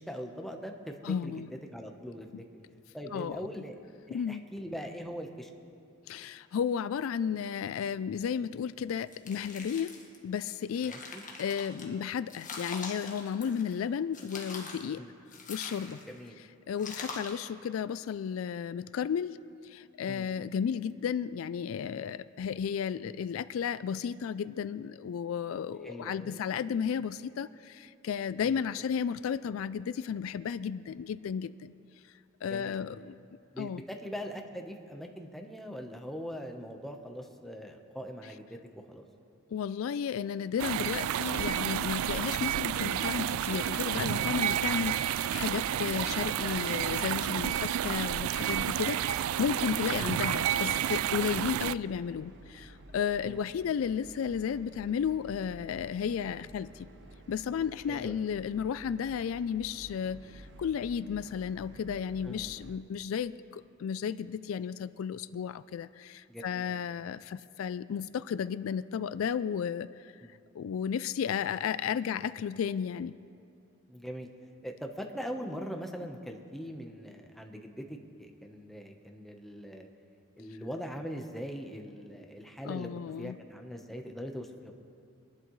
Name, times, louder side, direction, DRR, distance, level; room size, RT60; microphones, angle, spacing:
voice 1, 0.0-1.4 1.7-2.3 2.9-3.7 4.1-5.5 10.8-11.2 15.0-15.1 16.1-16.3 20.1-20.3 25.8-26.4 28.4-28.6 32.4-32.8 33.5-38.6 38.9-39.0 49.8-50.0 53.2-53.4 57.9-58.2 62.2-62.5 66.3-66.8 70.2-70.4 73.9-74.3 74.6-79.9 80.4-82.9 83.2-84.7, equal, ahead, 3 dB, 0.9 m, -41 dB
voice 2, 1.0-1.5 3.1-3.5 4.1-4.4 6.1-9.9 10.2-15.0 15.5-16.0 16.7-19.4 19.6-31.7 32.4-33.2 33.6-33.8 39.5-56.9 57.3-70.1 70.5-73.1 82.6-83.4, left 7 dB, 75° left, 15 dB, 0.3 m, -33 dB
sound 1, 9.1-10.2 10.6-11.9 12.3-13.8 14.1-14.9 15.3-16.2 16.8-17.5, left 4 dB, 40° left, 1.6 m, -43 dB
sound 2, 40.6-51.7, right 10 dB, 85° right, 0.3 m, -30 dB
sound 3, 43.2-62.8, right 1 dB, 60° right, 0.9 m, -52 dB
24.0 x 11.5 x 3.1 m, 2.5 s
head